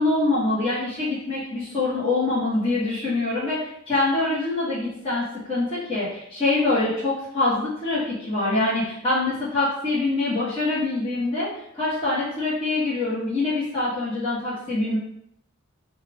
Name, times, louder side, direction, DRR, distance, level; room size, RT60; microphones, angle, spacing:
voice 1, 0.0-11.5 11.7-15.0, left 2 dB, 25° left, -10 dB, 1.1 m, -24 dB
4.5 x 2.4 x 3.4 m, 0.74 s
head